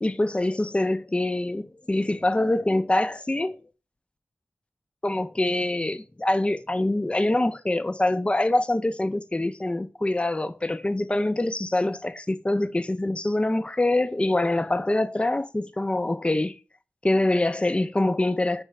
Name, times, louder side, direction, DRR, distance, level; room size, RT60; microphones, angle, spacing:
voice 1, 0.0-3.6 5.0-16.5 17.0-18.6, left 1 dB, 25° left, 0.4 m, -25 dB
4.7 x 3.2 x 3.1 m
cardioid pair, 45°, 5 cm